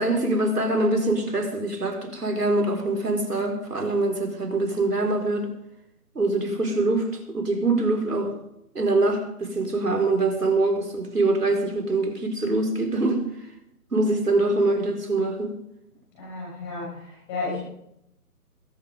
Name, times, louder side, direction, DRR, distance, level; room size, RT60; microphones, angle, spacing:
voice 1, 0.0-5.5 6.1-8.3 8.7-13.5 13.9-15.6, right 2 dB, 90° right, 4.9 m, -24 dB
voice 2, 16.2-17.6, left 3 dB, 15° left, 6.9 m, -32 dB
21.5 x 9.7 x 5.3 m
figure-of-eight pair, 165°, 46 cm